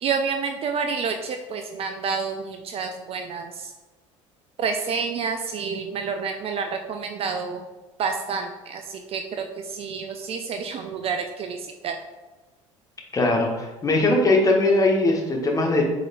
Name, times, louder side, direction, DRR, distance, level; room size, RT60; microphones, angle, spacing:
voice 1, 0.0-3.7 4.6-7.6 8.0-12.0, right 5 dB, 35° right, 5 dB, 0.4 m, -29 dB
voice 2, 13.1-15.8, left 2 dB, 20° left, 0 dB, 1.0 m, -20 dB
4.8 x 4.1 x 2.3 m, 1.1 s
figure-of-eight pair, 65°, 17 cm